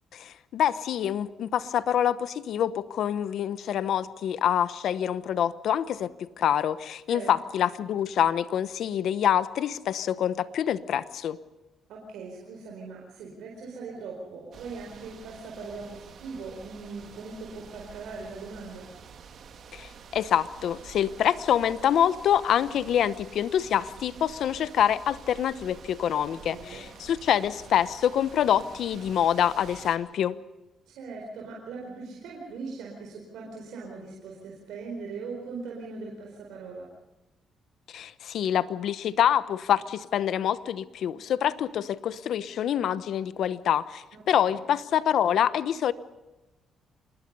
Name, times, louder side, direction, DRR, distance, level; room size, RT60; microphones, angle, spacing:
voice 1, 0.1-11.4 19.7-30.4 37.9-45.9, left 10 dB, 70° left, 15 dB, 0.9 m, -26 dB
voice 2, 11.9-18.9 26.5-26.8 30.9-36.9 44.1-44.6, right 4 dB, 85° right, -1 dB, 4.5 m, -40 dB
sound 1, 14.5-30.0, right 6 dB, 60° right, 2.7 m, -48 dB
27.0 x 20.5 x 5.5 m, 1.0 s
cardioid pair, 90°, 0 cm